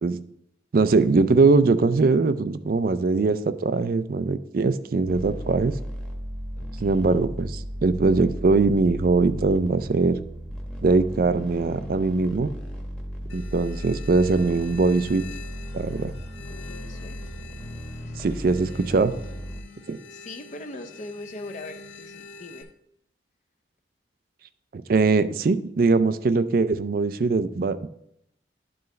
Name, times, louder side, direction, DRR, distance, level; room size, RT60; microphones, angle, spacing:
voice 1, 0.7-5.7 6.8-10.2 10.8-12.5 13.3-15.2 15.7-16.1 18.2-19.1 19.9-20.0 24.7-27.9, right 3 dB, 50° right, 13 dB, 0.4 m, -21 dB
sound 1, 5.1-19.6, equal, 5° left, 1.0 m, -35 dB
voice 2, 6.6-7.2 16.5-17.2 17.7-19.4 20.1-22.7, left 2 dB, 40° left, 6 dB, 0.5 m, -42 dB
sound 2, 13.3-22.6, left 5 dB, 75° left, 1.0 m, -46 dB
11.5 x 4.6 x 3.2 m, 0.75 s
head